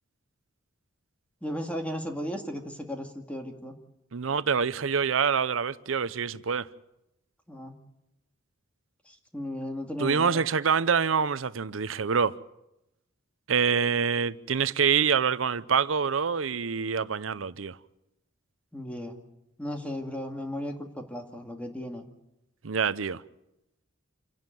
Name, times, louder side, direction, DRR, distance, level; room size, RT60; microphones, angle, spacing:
voice 1, 1.4-3.8 7.5-7.8 9.1-10.4 18.7-19.2 19.6-22.0, equal, 5° left, 2.1 m, -35 dB
voice 2, 4.1-6.7 10.0-12.3 13.5-17.8 22.6-23.2, right 6 dB, 85° right, 0.7 m, -26 dB
27.5 x 11.5 x 9.2 m
head